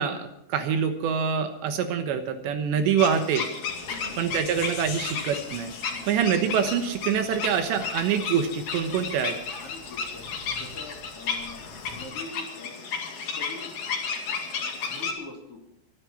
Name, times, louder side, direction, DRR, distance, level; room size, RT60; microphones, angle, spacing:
voice 1, 0.0-3.5 4.2-5.7 6.1-9.4, right 7 dB, 75° right, 8 dB, 3.2 m, -25 dB
sound 1, 3.0-15.1, left 5 dB, 50° left, 3.4 m, -33 dB
sound 2, 3.7-12.1, left 4 dB, 70° left, 5.4 m, -46 dB
voice 2, 3.9-4.2 5.9-6.2 9.6-12.9 13.3-13.7 14.8-15.6, left 3 dB, 35° left, 0 dB, 3.1 m, -44 dB
25.0 x 9.7 x 5.7 m, 0.85 s
omnidirectional pair, 5.5 m